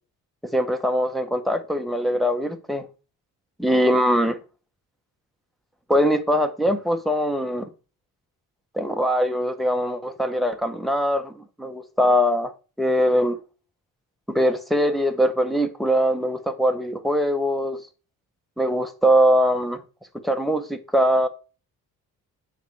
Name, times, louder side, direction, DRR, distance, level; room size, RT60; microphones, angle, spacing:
voice 1, 0.5-2.8 3.6-4.4 5.9-7.7 8.7-12.5 12.8-13.4 14.3-17.8 18.6-19.8 20.2-21.3, equal, ahead, 1.1 m, -22 dB
9.3 x 4.6 x 4.7 m
cardioid pair, 135°, 35 cm